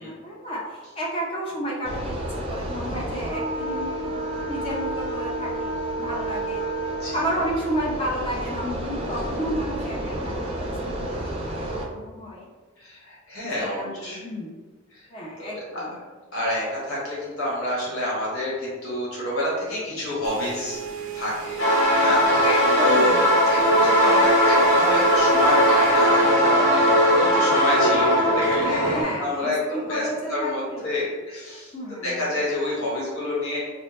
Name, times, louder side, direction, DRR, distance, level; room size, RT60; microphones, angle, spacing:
voice 1, 0.0-6.6 7.1-12.5 13.4-14.5 15.1-16.0 22.4-23.3 28.5-30.9 31.7-32.4, equal, 25° left, -4 dB, 0.6 m, -32 dB
sound 1, 1.8-11.8, right 1 dB, 25° right, 0.5 m, -30 dB
voice 2, 12.8-14.3 14.9-15.0 15.4-15.9 16.3-20.8 21.1-21.6 21.9-22.5 22.8-23.2 23.5-31.7 32.0-33.6, left 1 dB, 85° left, -6 dB, 1.3 m, -28 dB
sound 2, 20.2-26.4, right 7 dB, 80° right, 0.6 m, -35 dB
sound 3, 21.6-29.0, equal, 60° left, 1.1 m, -19 dB
4.3 x 2.0 x 3.1 m, 1.3 s
head